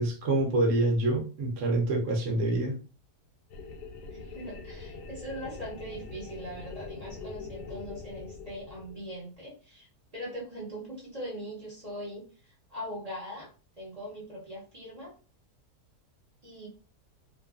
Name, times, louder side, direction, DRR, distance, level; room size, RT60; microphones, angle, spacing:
voice 1, 0.0-2.7, right 2 dB, 60° right, 0 dB, 0.9 m, -26 dB
sound 1, 3.5-9.2, left 4 dB, 85° left, 1.2 m, -43 dB
voice 2, 4.1-9.9 10.1-12.3 12.7-13.5 13.8-15.1 16.4-16.7, equal, 40° right, -4 dB, 0.6 m, -41 dB
2.6 x 2.3 x 2.3 m, 0.36 s
omnidirectional pair, 1.7 m